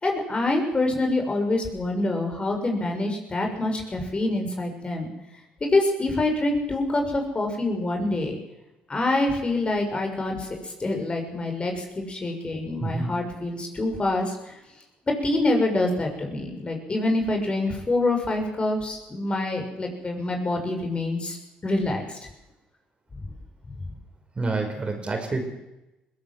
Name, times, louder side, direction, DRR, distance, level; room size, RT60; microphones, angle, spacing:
voice 1, 0.0-5.1 5.6-8.4 8.9-14.4 15.1-21.4 21.6-22.2, left 2 dB, 30° left, 3 dB, 6.2 m, -26 dB
voice 2, 12.8-13.1 24.4-25.5, right 3 dB, 30° right, 4 dB, 5.4 m, -28 dB
20.5 x 17.5 x 7.7 m, 0.97 s
supercardioid pair, 65°, 4 cm